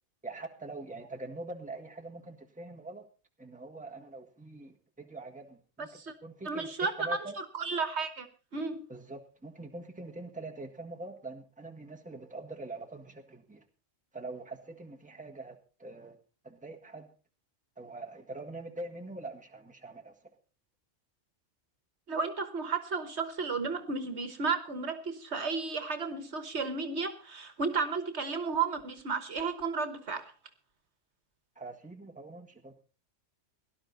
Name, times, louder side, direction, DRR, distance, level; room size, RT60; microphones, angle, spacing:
voice 1, 0.2-3.0 3.4-5.9 6.2-6.7 7.0-7.3 8.9-13.6 14.1-16.2 16.4-17.1 17.8-20.1 31.5-32.7, right 2 dB, 5° right, 1.6 m, -43 dB
voice 2, 6.4-8.3 8.5-8.8 22.1-30.3, right 4 dB, 60° right, 1.5 m, -33 dB
18.0 x 11.5 x 4.1 m
omnidirectional pair, 1.3 m